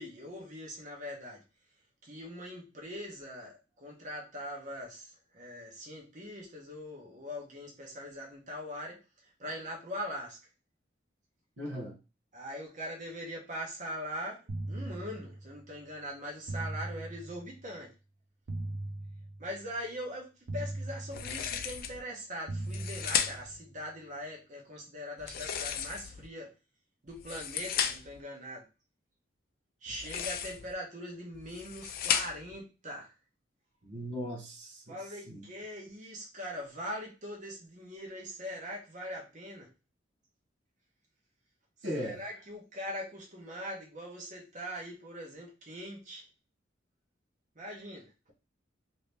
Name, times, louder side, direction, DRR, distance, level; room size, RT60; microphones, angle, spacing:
voice 1, 0.0-1.4 2.0-9.0 9.4-10.4 12.3-14.4 14.7-17.9 19.4-26.5 27.0-28.6 29.8-33.1 34.9-39.7 42.0-46.2 47.6-48.1, equal, 45° right, -2 dB, 1.0 m, -41 dB
voice 2, 11.6-11.9 33.8-35.4 41.8-42.2, equal, 75° right, -2 dB, 1.0 m, -38 dB
sound 1, 14.5-15.7 16.5-17.7 18.5-19.7 20.5-21.7 22.5-23.7, right 1 dB, 60° right, 0.5 m, -39 dB
sound 2, 21.1-22.0 22.6-23.6 25.2-26.3 27.1-28.2 29.9-30.7 31.3-32.6, left 8 dB, 55° left, 0.4 m, -34 dB
2.8 x 2.8 x 3.3 m, 0.30 s
head